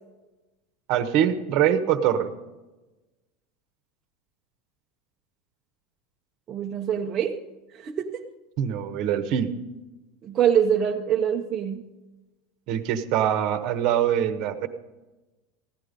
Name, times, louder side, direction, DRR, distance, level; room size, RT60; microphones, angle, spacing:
voice 1, 0.9-2.3 8.6-9.5 12.7-14.7, right 10 dB, 45° right, 9 dB, 1.0 m, -23 dB
voice 2, 6.5-7.4 7.7-8.2 10.2-11.8, right 8 dB, 25° right, 0 dB, 0.7 m, -24 dB
15.5 x 11.5 x 5.2 m, 1.1 s
supercardioid pair, 160°, 0 cm